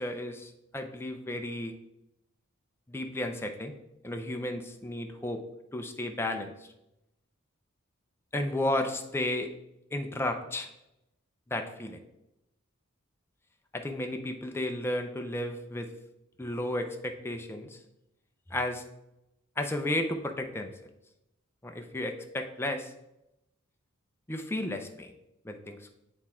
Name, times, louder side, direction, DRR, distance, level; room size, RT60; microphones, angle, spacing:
voice 1, 0.0-1.7 2.9-3.7 4.0-5.4 5.7-6.5 8.3-9.5 9.9-10.7 11.5-12.0 13.7-15.9 16.4-17.8 18.5-18.8 19.6-20.7 21.6-22.9 24.3-25.1 25.4-26.0, left 1 dB, 10° left, 4 dB, 0.5 m, -33 dB
8.0 x 3.6 x 4.3 m, 0.88 s
head